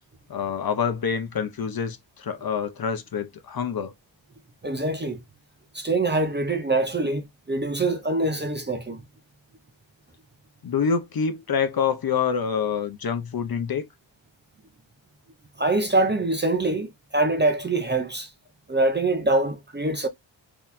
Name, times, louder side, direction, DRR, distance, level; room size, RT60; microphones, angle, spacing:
voice 1, 0.3-3.9 10.6-13.9, left 6 dB, 50° left, 0.6 m, -26 dB
voice 2, 4.6-5.2 5.7-9.0 15.6-18.3 18.7-20.1, right 2 dB, 25° right, 0.5 m, -24 dB
3.8 x 2.8 x 2.6 m
wide cardioid pair, 170°, 46 cm